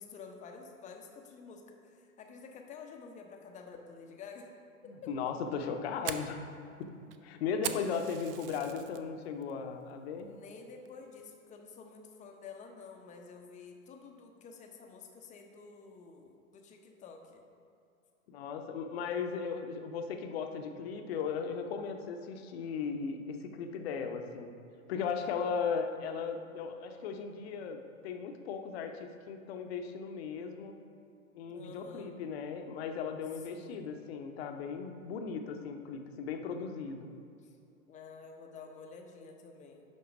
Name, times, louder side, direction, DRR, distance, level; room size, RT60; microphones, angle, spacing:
voice 1, 0.0-4.5 5.0-5.1 10.3-17.5 31.5-32.1 33.5-33.9 37.4-37.5 37.9-39.8, left 5 dB, 20° left, 3 dB, 0.7 m, -50 dB
voice 2, 4.9-6.4 6.8-7.0 7.2-10.3 18.3-24.5 24.9-30.8 31.3-37.1, left 6 dB, 50° left, 5 dB, 0.9 m, -37 dB
Fire, 5.5-9.0 9.4-9.8 10.2-10.3 10.9-11.2, right 10 dB, 45° right, 0.5 m, -41 dB
10.5 x 3.8 x 5.1 m, 2.5 s
figure-of-eight pair, 100°, 41 cm